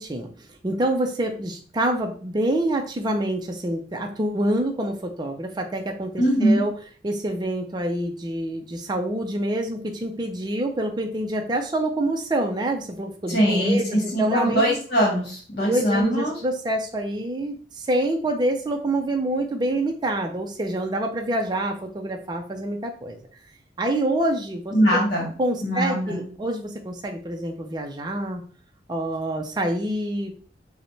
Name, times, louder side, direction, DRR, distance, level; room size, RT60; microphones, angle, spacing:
voice 1, 0.0-6.7 7.0-13.8 14.2-14.6 15.6-23.2 23.8-24.7 25.4-28.4 28.9-30.3, right 1 dB, 25° right, 3 dB, 0.5 m, -26 dB
voice 2, 6.2-6.6 13.3-16.4 24.7-25.3 25.6-26.2, equal, 45° left, -3 dB, 1.3 m, -22 dB
5.0 x 2.1 x 3.2 m, 0.42 s
head